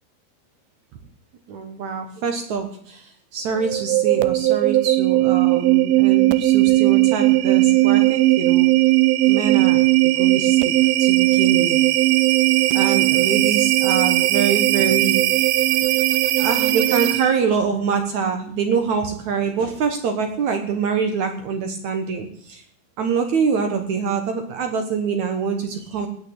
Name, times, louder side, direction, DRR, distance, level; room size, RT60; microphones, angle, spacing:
voice 1, 1.5-8.7 9.3-9.8 10.0-11.8 12.7-15.4 16.4-22.6 23.0-26.1, right 6 dB, 65° right, 6 dB, 1.8 m, -25 dB
sound 1, 3.5-17.5, right 17 dB, 85° right, 2.1 m, -18 dB
18.0 x 6.0 x 8.0 m, 0.64 s
omnidirectional pair, 5.2 m